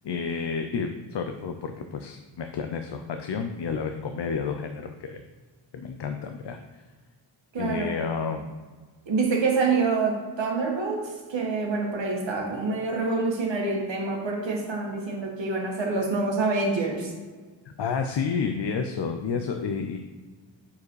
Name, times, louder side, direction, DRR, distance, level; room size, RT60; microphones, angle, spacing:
voice 1, 0.0-5.2 5.7-6.8 7.6-8.5 17.8-20.0, left 5 dB, 65° left, 6 dB, 0.6 m, -30 dB
voice 2, 7.5-7.9 9.1-17.1, right 3 dB, 70° right, -1 dB, 1.7 m, -26 dB
6.8 x 4.9 x 4.7 m, 1.4 s
wide cardioid pair, 145°, 47 cm